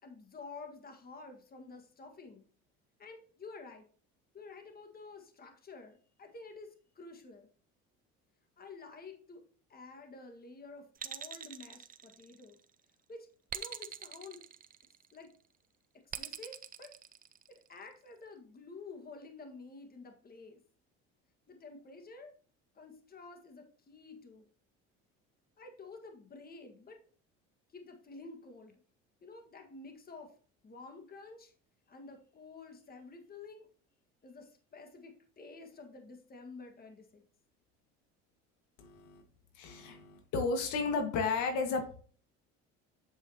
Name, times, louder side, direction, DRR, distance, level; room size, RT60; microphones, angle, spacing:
voice 1, 0.0-2.4 3.0-3.9 4.3-7.5 8.6-9.4 9.7-12.6 13.1-13.3 13.5-14.4 15.1-15.3 16.1-16.9 17.7-20.6 21.5-22.3 22.7-24.5 25.6-27.0 27.7-28.7 29.2-30.3 30.6-31.5 31.9-33.7 34.2-37.2, left 3 dB, 30° left, 5 dB, 1.7 m, -50 dB
sound 1, 11.0-12.6 13.5-15.2 16.1-17.7, right 8 dB, 30° right, 0.5 m, -43 dB
voice 2, 38.8-39.2 39.5-42.0, left 4 dB, 75° left, 5 dB, 1.8 m, -33 dB
8.0 x 7.3 x 2.9 m, 0.42 s
supercardioid pair, 100°, 30 cm